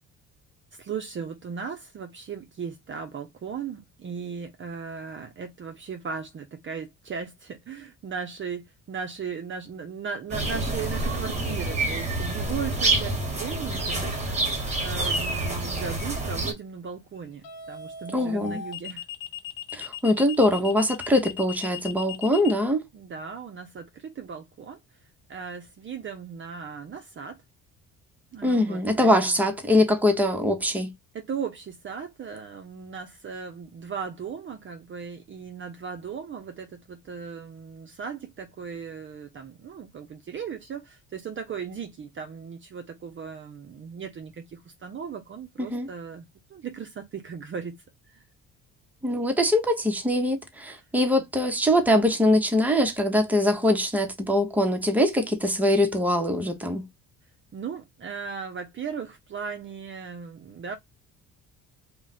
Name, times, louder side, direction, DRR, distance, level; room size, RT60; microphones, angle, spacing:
voice 1, 0.8-19.0 22.9-24.8 25.3-27.4 28.3-29.5 31.1-47.8 48.1-48.2 57.5-60.7, right 6 dB, 35° right, 0.6 m, -37 dB
sound 1, 10.3-16.5, right 2 dB, 20° right, 1.2 m, -27 dB
sound 2, 14.1-14.5 17.4-22.5, left 8 dB, 75° left, 0.8 m, -37 dB
voice 2, 18.1-18.6 19.7-22.8 28.4-30.9 45.6-45.9 49.0-56.8, left 1 dB, 5° right, 0.8 m, -23 dB
2.4 x 2.2 x 4.0 m
supercardioid pair, 85°, 34 cm